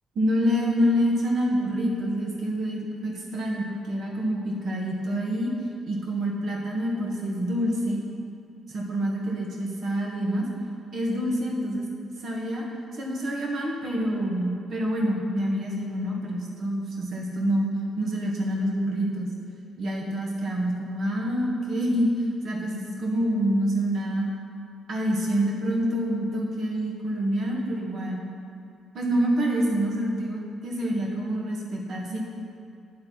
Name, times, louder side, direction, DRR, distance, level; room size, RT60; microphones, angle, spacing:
voice 1, 0.1-5.5 5.9-8.0 8.7-10.5 10.9-11.9 12.2-12.6 12.9-17.7 18.0-19.3 19.8-22.1 22.4-24.3 24.9-28.3 28.9-32.2, equal, 60° right, -1 dB, 1.4 m, -27 dB
8.6 x 4.0 x 5.9 m, 2.4 s
cardioid pair, 90°, 0 cm